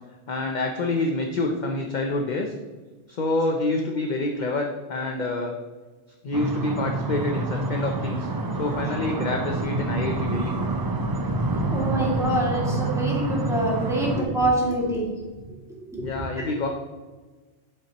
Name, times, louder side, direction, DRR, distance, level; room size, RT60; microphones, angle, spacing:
voice 1, 0.3-2.5 3.1-5.5 6.2-8.3 8.6-10.5 16.0-16.7, left 2 dB, 45° left, 2 dB, 0.7 m, -27 dB
sound 1, 6.3-14.2, right 2 dB, 35° right, 0.3 m, -27 dB
voice 2, 11.7-15.1 15.9-16.0 16.4-16.5, right 1 dB, 5° right, -5 dB, 2.2 m, -25 dB
8.4 x 7.2 x 3.0 m, 1.3 s
omnidirectional pair, 1.2 m